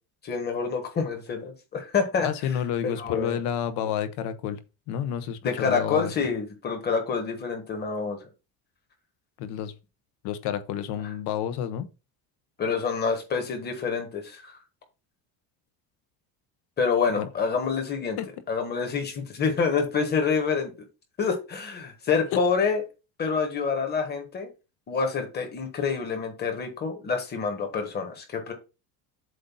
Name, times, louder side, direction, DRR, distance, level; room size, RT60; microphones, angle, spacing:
voice 1, 0.2-2.3 3.0-3.4 5.4-8.2 12.6-14.5 16.8-18.2 18.5-20.7 21.2-22.8 23.2-24.5 24.9-28.5, left 5 dB, 20° left, 1.3 m, -27 dB
voice 2, 2.2-4.6 4.9-6.1 9.4-9.7 10.2-11.9 17.2-17.3 18.2-18.3, left 9 dB, 65° left, 0.9 m, -30 dB
7.8 x 2.6 x 5.5 m
cardioid pair, 170°, 44 cm